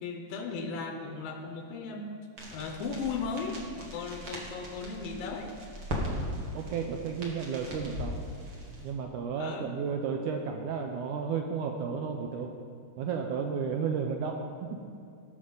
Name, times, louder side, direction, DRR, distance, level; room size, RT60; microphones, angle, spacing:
voice 1, 0.0-2.1 2.5-5.5 9.4-9.7, left 4 dB, 80° left, 3 dB, 2.4 m, -36 dB
sound 1, 2.4-8.9, equal, 50° right, 1.2 m, -39 dB
voice 2, 6.5-8.2 8.8-12.5 13.0-14.4 14.7-14.8, right 6 dB, 85° right, 3 dB, 1.8 m, -32 dB
18.5 x 6.3 x 3.9 m, 2.4 s
omnidirectional pair, 4.2 m